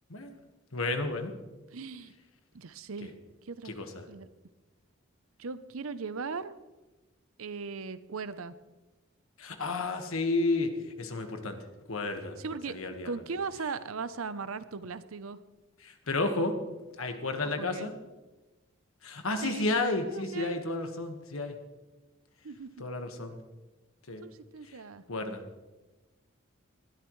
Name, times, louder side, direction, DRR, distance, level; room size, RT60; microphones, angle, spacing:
voice 1, 0.7-1.3 3.0-3.1 3.6-4.1 9.4-11.6 11.9-12.4 12.7-13.1 15.8-16.5 17.0-17.9 19.0-21.5 22.8-23.4 24.1-24.2 24.6-24.8 25.1-25.4, left 2 dB, 75° left, 6 dB, 1.5 m, -32 dB
voice 2, 1.7-2.1 2.5-3.1 3.4-3.7 4.1-4.3 5.4-6.6 7.4-8.5 12.4-15.4 17.6-17.9 19.4-19.7 20.1-20.6 22.4-22.8 24.2-25.0, right 4 dB, 80° right, 14 dB, 0.7 m, -38 dB
19.5 x 12.5 x 3.2 m, 1.1 s
head